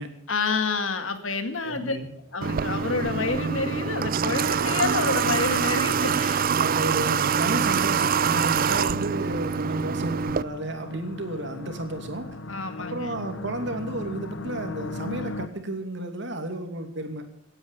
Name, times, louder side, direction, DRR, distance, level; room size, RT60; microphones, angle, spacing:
voice 1, 0.3-2.0 2.3-6.5 12.5-13.1, left 4 dB, 90° left, 8 dB, 2.1 m, -28 dB
voice 2, 1.6-2.1 6.6-12.3 12.8-17.2, right 1 dB, 65° right, 5 dB, 2.8 m, -32 dB
sound 1, 2.3-15.5, left 2 dB, 70° left, 0.9 m, -40 dB
Water / Water tap faucet, 2.4-10.4, right 6 dB, 45° right, 0.5 m, -25 dB
17.5 x 9.7 x 7.0 m, 0.69 s
head